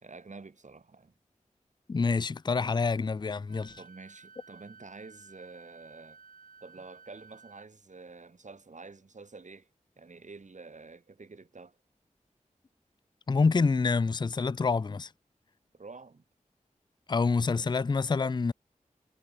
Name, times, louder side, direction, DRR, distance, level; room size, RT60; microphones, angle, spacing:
voice 1, 0.0-1.1 3.8-6.2 6.6-9.7 10.0-11.8 15.7-16.2 17.5-17.8, right 4 dB, 65° right, 4.2 m, -48 dB
voice 2, 1.9-3.8 13.3-15.1 17.1-18.5, left 4 dB, 35° left, 0.4 m, -27 dB
Wind instrument woodwind instrument, 3.5-7.7, right 5 dB, 85° right, 2.0 m, -54 dB
wide cardioid pair, 80°, 14 cm